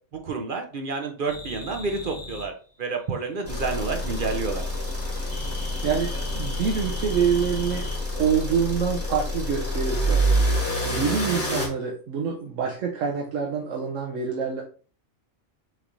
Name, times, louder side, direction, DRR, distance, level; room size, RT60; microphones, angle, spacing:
voice 1, 0.1-4.6, right 4 dB, 50° right, 4 dB, 0.7 m, -29 dB
sound 1, 1.3-2.5 5.3-8.0, left 2 dB, 45° left, 1.1 m, -39 dB
sound 2, 3.4-11.7, equal, 10° left, 1.1 m, -27 dB
voice 2, 5.8-7.9 8.2-10.2 10.8-14.6, right 6 dB, 80° right, -1 dB, 1.1 m, -26 dB
6.2 x 3.2 x 2.5 m, 0.41 s
omnidirectional pair, 1.3 m